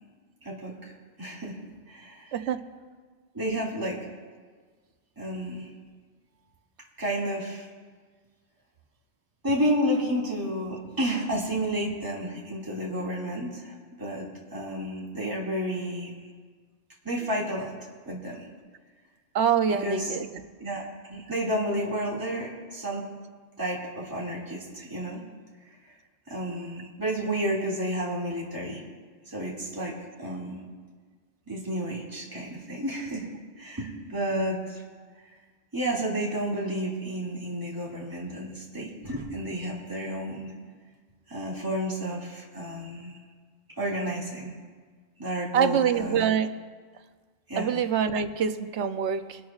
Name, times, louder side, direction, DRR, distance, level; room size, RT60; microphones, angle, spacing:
voice 1, 0.4-0.9 1.2-1.6 1.9-2.4 3.3-4.0 5.2-5.7 7.0-7.7 9.4-14.3 14.5-16.1 17.0-17.7 18.1-18.5 19.7-20.2 20.6-23.0 23.6-25.2 25.9-26.0 26.3-28.8 29.3-29.9 30.2-30.6 31.5-33.3 33.6-34.8 35.7-40.5 41.3-43.2 43.8-44.5 45.2-46.2 47.5-47.7, equal, 20° right, -5 dB, 2.2 m, -31 dB
voice 2, 19.3-20.3 45.5-46.5 47.6-49.4, right 8 dB, 85° right, 10 dB, 1.0 m, -25 dB
22.5 x 12.5 x 2.4 m, 1.5 s
omnidirectional pair, 1.1 m